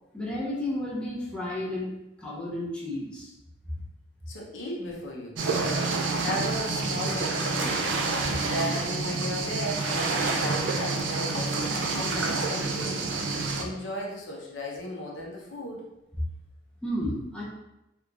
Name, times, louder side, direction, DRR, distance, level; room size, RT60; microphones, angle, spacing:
voice 1, 0.1-1.9 2.2-3.3 16.8-17.4, left 1 dB, 5° left, -6 dB, 0.7 m, -32 dB
voice 2, 4.3-5.8 6.2-7.9 8.4-11.6 11.9-13.1 13.5-15.8, equal, 85° left, -2 dB, 0.8 m, -35 dB
sound 1, 5.4-13.6, right 3 dB, 75° right, 0.5 m, -28 dB
3.5 x 3.0 x 2.5 m, 0.92 s
head